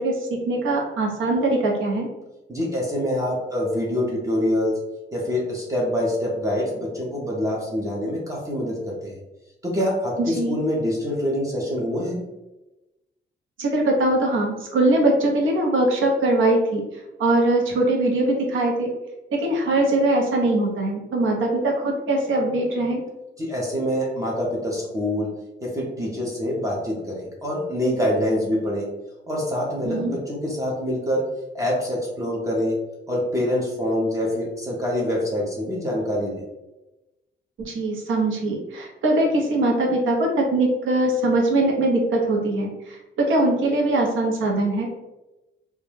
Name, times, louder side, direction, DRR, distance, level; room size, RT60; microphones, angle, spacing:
voice 1, 0.0-2.1 10.4-10.6 13.6-16.8 17.2-18.9 19.3-23.0 29.8-30.1 37.6-44.9, right 2 dB, 85° right, 0 dB, 0.7 m, -21 dB
voice 2, 2.5-4.7 5.1-9.2 9.6-12.2 23.4-25.3 25.6-28.9 29.3-31.2 31.5-32.7 33.1-36.4, left 1 dB, 15° right, -4 dB, 0.4 m, -25 dB
2.2 x 2.0 x 3.1 m, 1.0 s
wide cardioid pair, 170°, 20 cm